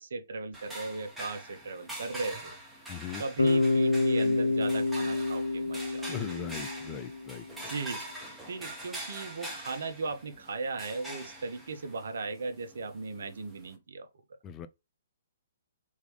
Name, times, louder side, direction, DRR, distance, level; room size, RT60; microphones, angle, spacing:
voice 1, 0.0-2.5 3.2-6.1 7.6-8.0 8.5-14.1, right 3 dB, 65° right, 0.9 m, -37 dB
sound 1, 0.5-13.8, right 1 dB, 5° right, 1.3 m, -44 dB
voice 2, 2.9-3.2 6.1-7.7 14.4-14.7, left 9 dB, 25° left, 0.4 m, -39 dB
Bass guitar, 3.4-7.4, left 2 dB, 90° left, 0.4 m, -28 dB
3.7 x 3.1 x 3.3 m
figure-of-eight pair, 130°, 0 cm